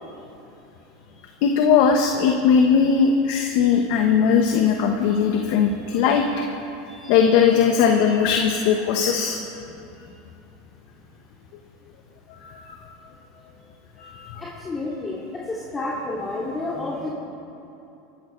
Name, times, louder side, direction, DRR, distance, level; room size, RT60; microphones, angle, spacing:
voice 1, 1.4-6.4 7.1-9.4 12.3-12.8 14.0-14.4, left 6 dB, 65° left, 3 dB, 1.1 m, -19 dB
voice 2, 5.4-6.1 6.9-7.2 9.9-10.1 14.0-15.2 15.4-17.1, left 2 dB, 20° left, -6 dB, 2.4 m, -32 dB
23.0 x 12.0 x 3.3 m, 2.9 s
supercardioid pair, 110°, 0 cm